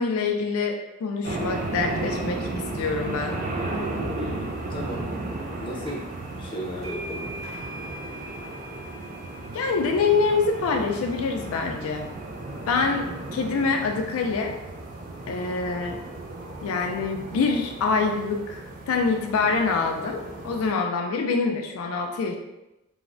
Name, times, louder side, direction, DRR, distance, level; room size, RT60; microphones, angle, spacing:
voice 1, 0.0-3.4 9.5-12.1 12.7-14.6 15.3-16.0 16.6-22.4, left 4 dB, 85° left, 3 dB, 0.3 m, -25 dB
sound 1, 1.2-20.7, right 2 dB, 40° right, 0.3 m, -34 dB
voice 2, 4.1-5.1 5.6-7.3, equal, 25° left, -3 dB, 0.5 m, -35 dB
sound 2, 5.9-6.2 6.4-13.8, equal, 75° right, 0.9 m, -43 dB
3.1 x 2.0 x 2.5 m, 0.95 s
head